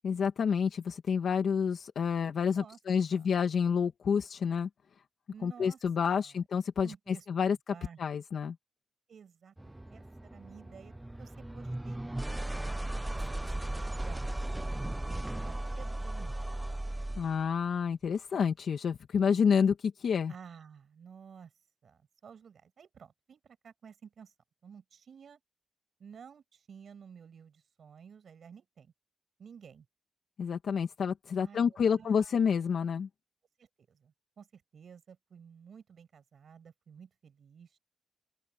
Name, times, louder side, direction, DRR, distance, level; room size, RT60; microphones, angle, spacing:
voice 1, 0.0-4.7 5.4-8.6 17.2-20.3 30.4-33.1, left 6 dB, 75° left, 1.7 m, -29 dB
voice 2, 2.3-2.8 3.1-3.3 5.3-5.8 6.1-6.4 6.8-8.0 9.1-12.0 12.6-12.8 13.1-16.5 19.3-19.5 20.3-21.5 21.8-24.3 24.6-25.4 26.0-28.9 29.4-29.8 31.4-32.4 33.6-37.8, right 7 dB, 70° right, 6.8 m, -53 dB
sound 1, 9.6-17.4, right 1 dB, 15° right, 0.5 m, -36 dB
open air
cardioid pair, 75°, 0 cm